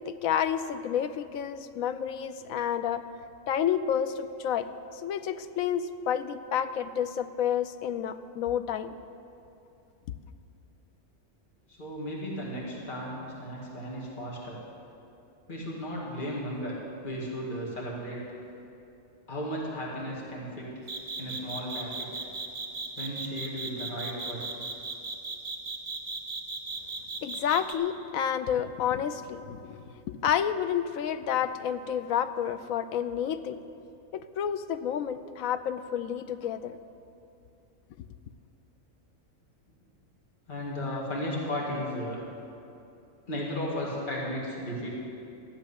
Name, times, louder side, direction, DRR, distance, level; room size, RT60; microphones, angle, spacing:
voice 1, 0.1-3.0 3.5-4.7 4.9-9.0 27.2-33.6 34.1-36.8, left 9 dB, 85° left, 11 dB, 1.1 m, -30 dB
voice 2, 11.8-14.6 15.5-16.8 17.0-18.2 19.3-20.7 21.2-22.1 23.0-24.6 40.5-42.2 43.3-44.9, equal, 35° left, -4 dB, 2.3 m, -35 dB
sound 1, 20.9-27.7, right 4 dB, 65° right, 1.6 m, -36 dB
14.0 x 7.0 x 9.9 m, 2.7 s
omnidirectional pair, 1.4 m